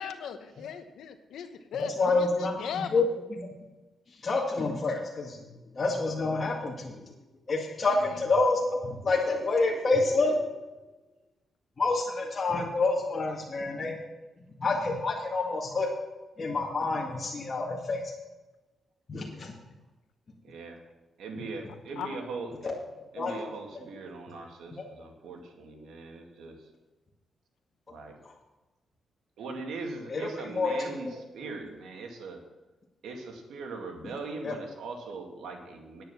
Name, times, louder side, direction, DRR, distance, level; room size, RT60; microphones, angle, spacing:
voice 1, 0.0-3.0 7.8-8.2 22.0-22.2, left 8 dB, 85° left, 9 dB, 1.0 m, -38 dB
voice 2, 1.7-3.1 3.4-3.5 4.2-5.4 5.7-7.0 7.5-10.4 11.8-13.9 14.6-15.9 16.4-18.0 19.1-19.5 22.6-22.7 23.2-23.3 23.7-23.9 30.1-31.2 34.0-34.1 34.4-34.6, left 3 dB, 40° left, -2 dB, 1.8 m, -28 dB
voice 3, 21.2-22.7 23.1-26.5 27.9-28.1 29.4-31.1 31.3-32.4 33.0-36.0, right 3 dB, 85° right, 2 dB, 2.2 m, -40 dB
9.9 x 9.2 x 6.1 m, 1.1 s
cardioid pair, 85°, 0 cm